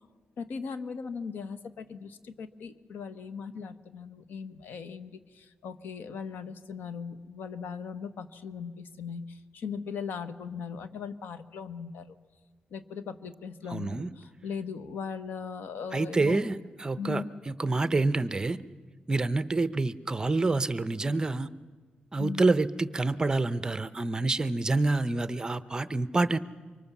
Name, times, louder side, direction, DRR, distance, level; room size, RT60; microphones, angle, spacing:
voice 1, 0.4-12.1 12.7-16.4 17.0-17.3 22.2-22.5, left 6 dB, 85° left, 11 dB, 1.2 m, -39 dB
voice 2, 13.7-14.1 15.9-18.6 19.1-21.5 22.1-26.4, right 3 dB, 20° right, 14 dB, 0.7 m, -27 dB
24.5 x 24.0 x 7.2 m, 1.5 s
wide cardioid pair, 125°, 3 cm